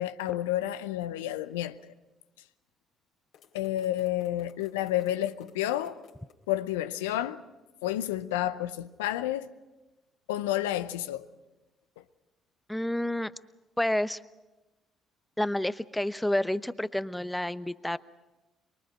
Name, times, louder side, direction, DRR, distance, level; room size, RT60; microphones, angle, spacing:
voice 1, 0.0-1.9 3.5-6.0 6.5-7.4 7.8-9.5 10.3-11.3 12.0-12.1, left 13 dB, 80° left, 0.7 m, -30 dB
sound 1, 3.3-6.4, left 7 dB, 65° left, 3.4 m, -57 dB
voice 2, 12.7-13.3 13.8-14.2 15.4-18.0, left 1 dB, 5° left, 0.8 m, -29 dB
24.0 x 23.0 x 6.2 m
hypercardioid pair, 50°, 0 cm